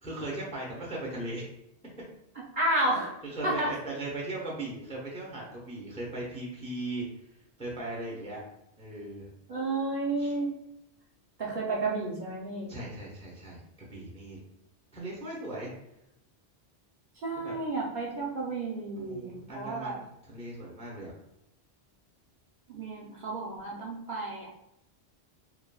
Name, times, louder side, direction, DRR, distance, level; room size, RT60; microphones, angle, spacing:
voice 1, 0.0-1.4 3.2-7.0 7.6-8.4 8.8-9.3 10.2-10.3 12.7-14.4 14.9-15.7 17.4-17.6 19.0-21.1, right 2 dB, 10° left, -3 dB, 0.5 m, -38 dB
voice 2, 2.5-3.1 3.4-3.7 9.5-10.5 11.4-12.7 17.2-20.0 22.7-24.5, right 2 dB, 55° right, -4 dB, 0.7 m, -31 dB
3.0 x 2.2 x 2.2 m, 0.82 s
omnidirectional pair, 1.1 m